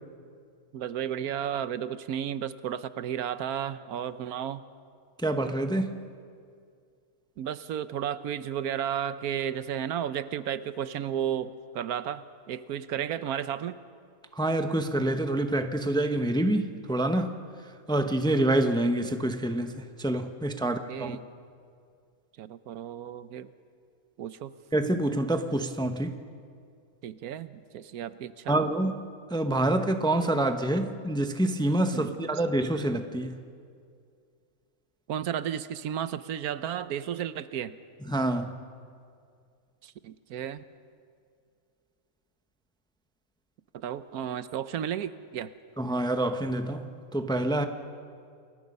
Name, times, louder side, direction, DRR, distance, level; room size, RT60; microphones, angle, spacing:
voice 1, 0.7-4.6 7.4-13.8 20.6-21.2 22.4-23.5 24.2-24.5 27.0-28.6 31.9-32.2 35.1-37.8 39.8-40.6 43.7-45.5, right 9 dB, 85° right, 14 dB, 1.2 m, -33 dB
voice 2, 5.2-6.1 14.3-21.2 24.7-26.2 28.5-29.0 29.3-33.4 38.1-38.6 45.8-47.7, right 1 dB, 5° left, 7 dB, 0.7 m, -27 dB
29.0 x 21.5 x 5.4 m, 2.3 s
omnidirectional pair, 1.5 m